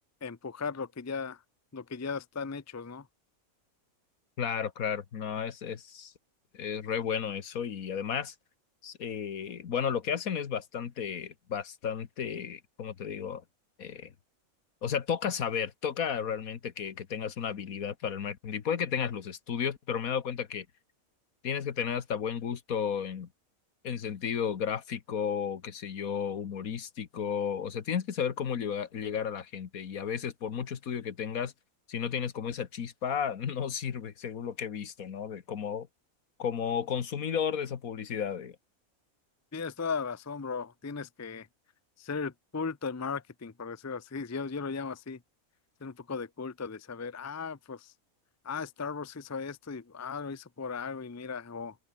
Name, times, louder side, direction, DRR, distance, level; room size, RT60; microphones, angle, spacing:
voice 1, 0.2-1.4 1.7-3.1 39.5-41.5 42.0-45.2 45.8-47.9 48.4-51.8, left 5 dB, 20° left, 0.5 m, -37 dB
voice 2, 4.4-6.1 6.5-8.3 8.8-13.4 13.8-14.1 14.8-20.7 21.4-23.3 23.8-31.5 31.9-35.9 36.4-38.6, left 7 dB, 75° left, 1.8 m, -33 dB
omnidirectional pair, 1.5 m